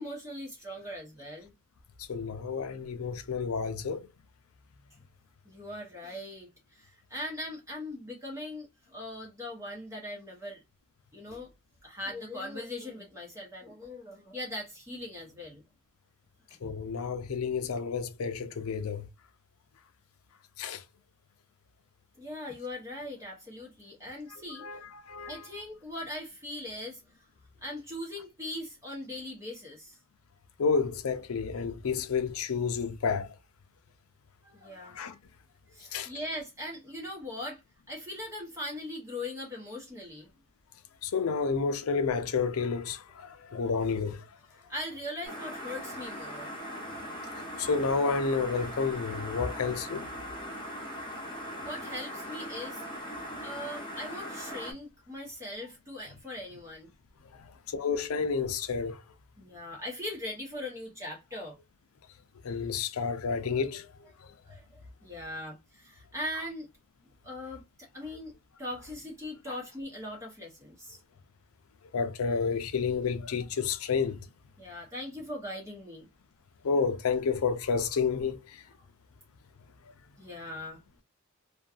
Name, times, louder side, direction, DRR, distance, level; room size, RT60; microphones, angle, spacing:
voice 1, 0.0-1.5 5.4-10.6 11.1-11.5 11.8-15.6 22.2-24.6 25.3-27.0 27.6-30.0 34.4-35.2 35.7-37.6 37.9-40.3 44.5-46.5 51.6-52.8 53.4-56.9 59.4-61.6 64.3-66.7 67.2-68.3 68.6-71.0 74.6-76.1 80.2-81.0, left 1 dB, 15° right, 0.8 m, -40 dB
voice 2, 2.1-4.1 16.6-19.1 20.6-20.8 24.6-25.4 30.6-33.3 34.9-35.2 35.9-36.1 41.0-44.2 47.6-50.1 57.4-59.0 62.4-63.9 71.9-74.2 76.6-78.6, left 5 dB, 80° left, 0.5 m, -30 dB
sound 1, 45.2-54.7, equal, 25° left, 0.9 m, -40 dB
2.6 x 2.3 x 2.3 m
head